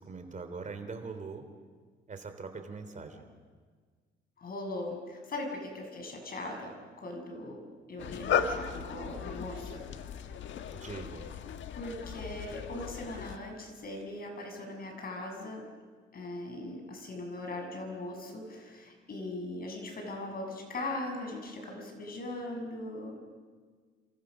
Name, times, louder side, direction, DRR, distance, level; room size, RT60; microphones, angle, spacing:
voice 1, 0.0-1.5 2.1-3.2 10.7-11.3, right 4 dB, 40° right, 7 dB, 3.3 m, -42 dB
voice 2, 4.4-7.6 7.9-9.8 11.7-15.6 16.1-23.2, left 2 dB, 50° left, 3 dB, 6.9 m, -40 dB
sound 1, 8.0-13.4, left 7 dB, 70° left, 1.5 m, -36 dB
29.5 x 27.0 x 6.5 m, 1.5 s
cardioid pair, 90°, 20 cm